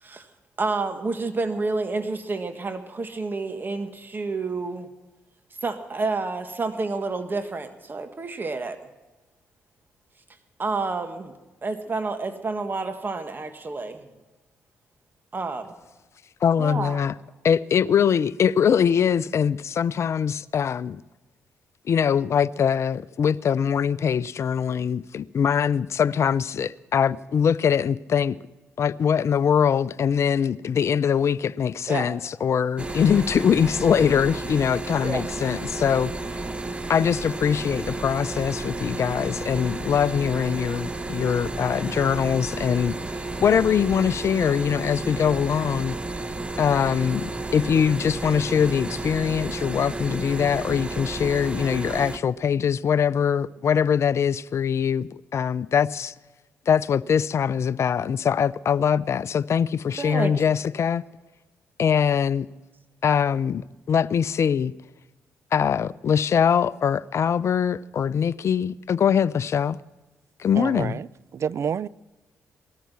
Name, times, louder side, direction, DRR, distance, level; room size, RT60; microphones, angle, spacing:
voice 1, 0.6-4.9 5.6-8.8 10.6-11.3 11.6-14.1 15.3-15.7 16.6-17.0 31.9-32.1 35.0-35.2 60.0-60.3, right 3 dB, 35° right, 1.7 m, -29 dB
voice 2, 16.4-17.1 17.4-21.0 21.9-28.4 28.8-36.1 36.9-42.9 43.4-45.9 46.6-56.1 56.7-61.0 61.8-62.5 63.0-64.7 65.5-69.8 70.4-71.0, left 7 dB, 55° left, 0.5 m, -22 dB
sound 1, 32.8-52.2, right 2 dB, 20° right, 0.9 m, -32 dB
voice 3, 70.6-71.1 71.3-71.9, right 8 dB, 55° right, 0.4 m, -28 dB
18.5 x 13.5 x 4.3 m
hypercardioid pair, 45°, 6 cm